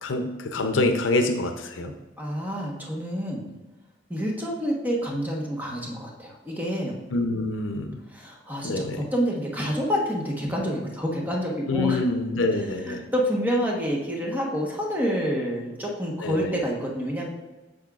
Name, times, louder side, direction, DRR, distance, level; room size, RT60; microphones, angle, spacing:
voice 1, 0.0-1.9 7.1-8.0 8.6-9.0 11.7-13.1 16.2-16.6, left 2 dB, 85° left, 5 dB, 0.6 m, -26 dB
voice 2, 2.2-3.5 4.1-7.0 8.1-12.0 12.8-17.3, equal, 10° right, -2 dB, 1.1 m, -28 dB
8.6 x 6.4 x 2.4 m, 1.1 s
head